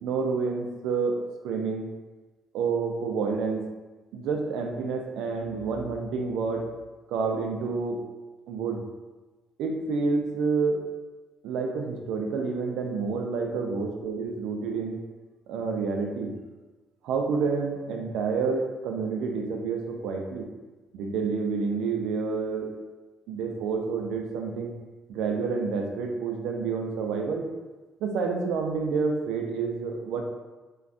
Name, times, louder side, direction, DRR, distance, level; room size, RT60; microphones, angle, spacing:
voice 1, 0.0-1.9 2.5-3.7 4.1-6.7 7.1-8.0 8.5-8.8 9.6-10.8 11.4-15.0 15.5-16.3 17.0-20.5 20.9-22.7 23.3-24.7 25.1-27.5 28.0-30.2, right 4 dB, 90° right, 3 dB, 0.4 m, -29 dB
2.5 x 2.2 x 3.3 m, 1.2 s
cardioid pair, 140°, 0 cm